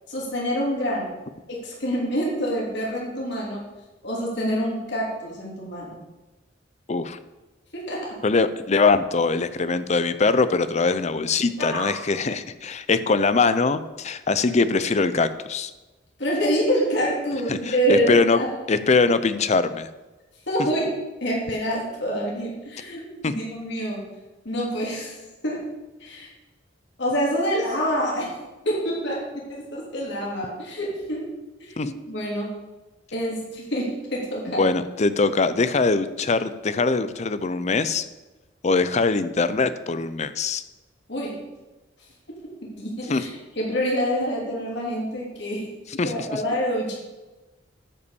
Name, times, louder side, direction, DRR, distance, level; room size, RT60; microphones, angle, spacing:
voice 1, 0.1-1.1 1.5-3.6 4.0-6.0 7.7-8.1 11.6-12.0 16.2-18.5 20.5-20.9 21.2-24.1 24.4-25.2 25.4-25.7 26.0-26.3 27.0-28.3 28.6-31.3 31.8-32.6 33.1-34.6 41.1-41.4 42.6-43.3 43.5-45.7 46.0-47.0, equal, 65° left, -4 dB, 3.2 m, -26 dB
voice 2, 6.9-7.2 8.2-15.7 17.5-18.4 18.7-19.9 23.2-23.3 31.8-31.9 34.6-38.1 38.6-40.6 43.1-43.2 46.0-46.4, left 4 dB, 35° left, 13 dB, 0.5 m, -22 dB
10.5 x 5.7 x 7.0 m, 1.1 s
head